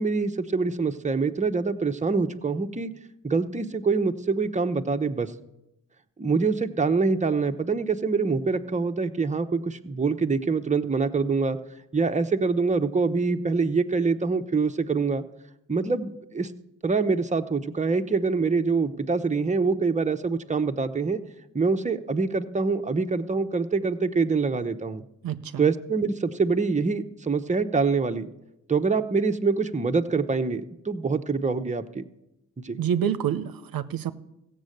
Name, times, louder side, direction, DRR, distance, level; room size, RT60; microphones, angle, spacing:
voice 1, 0.0-2.9 3.2-5.3 6.2-11.6 11.9-15.2 15.7-16.5 16.8-21.2 21.5-25.0 25.6-28.3 28.7-32.1 32.6-32.8, right 4 dB, 20° right, 7 dB, 0.9 m, -25 dB
voice 2, 25.2-25.6 32.8-34.1, right 9 dB, 70° right, 11 dB, 0.7 m, -27 dB
15.5 x 7.5 x 6.6 m, 0.89 s
cardioid pair, 55°, 36 cm